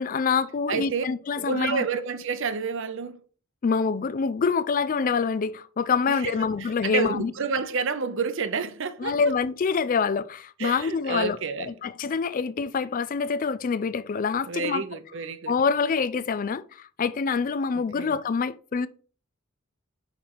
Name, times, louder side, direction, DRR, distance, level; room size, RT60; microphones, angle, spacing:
voice 1, 0.0-1.8 3.6-7.3 9.0-14.8 15.5-18.9, left 5 dB, 40° left, 0.4 m, -26 dB
voice 2, 0.7-1.0 1.3-3.2 6.1-6.3 6.8-9.2 10.6-11.7 14.5-15.5 17.7-18.2, right 5 dB, 60° right, 0.7 m, -29 dB
5.9 x 4.5 x 4.7 m
head